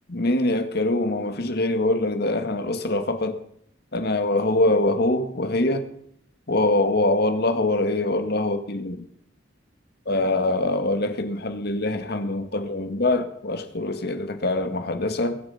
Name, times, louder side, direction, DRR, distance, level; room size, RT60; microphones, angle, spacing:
voice 1, 0.1-3.4 3.9-5.9 6.5-9.0 10.1-15.4, left 2 dB, 60° left, 2.0 m, -24 dB
22.0 x 10.0 x 5.8 m
head